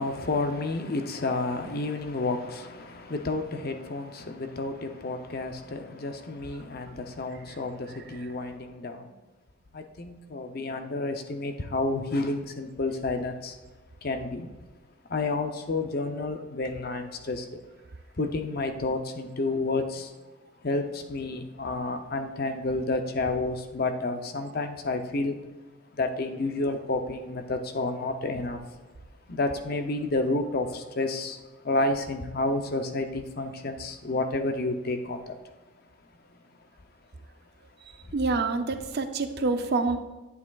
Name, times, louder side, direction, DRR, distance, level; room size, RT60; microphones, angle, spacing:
voice 1, 0.0-9.1 9.7-13.6 14.0-14.5 15.1-17.6 18.2-20.1 20.6-25.4 25.9-28.6 29.3-31.4 31.6-35.4, left 2 dB, 45° left, 6 dB, 0.6 m, -30 dB
voice 2, 38.1-40.0, right 3 dB, 50° right, 8 dB, 0.5 m, -26 dB
9.7 x 8.2 x 2.3 m, 1.2 s
head